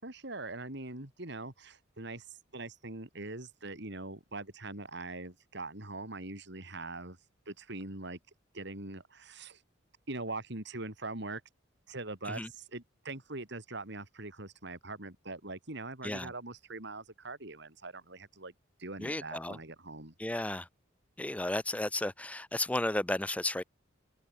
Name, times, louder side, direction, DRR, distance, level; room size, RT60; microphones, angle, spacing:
voice 1, 0.0-2.3 2.5-7.2 7.5-8.2 8.5-9.6 10.1-11.4 11.9-18.5 18.8-20.1, right 2 dB, 60° right, 4.0 m, -42 dB
voice 2, 19.0-19.6 20.2-20.7 21.2-23.6, left 1 dB, 5° left, 0.5 m, -33 dB
head